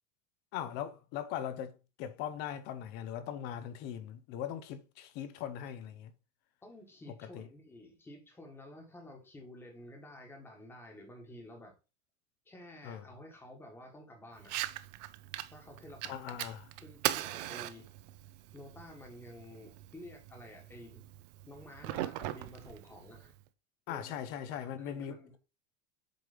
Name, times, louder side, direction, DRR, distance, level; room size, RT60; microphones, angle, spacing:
voice 1, 0.5-6.1 7.3-7.5 12.8-13.0 16.1-16.6 23.9-25.4, left 9 dB, 30° left, 0.5 m, -40 dB
voice 2, 6.6-11.7 12.4-14.6 15.5-16.4 16.8-17.9 18.5-21.1 21.4-23.3 23.9-24.1 24.5-25.3, left 1 dB, 5° left, 1.3 m, -51 dB
Fire, 14.4-23.4, right 15 dB, 40° right, 0.4 m, -40 dB
7.8 x 3.2 x 4.9 m
supercardioid pair, 175°, 32 cm